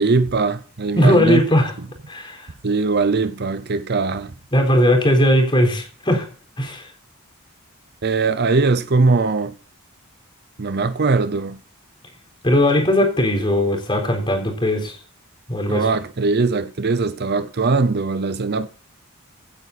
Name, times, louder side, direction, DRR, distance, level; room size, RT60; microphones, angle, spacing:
voice 1, 0.0-1.4 2.6-4.3 8.0-9.6 10.6-11.6 15.7-18.7, right 3 dB, 50° right, 0.7 m, -20 dB
voice 2, 1.0-1.7 2.1-2.5 4.5-6.3 6.6-6.8 12.4-15.0 15.5-15.9, left 1 dB, 25° left, 3.8 m, -18 dB
16.5 x 9.1 x 4.1 m
head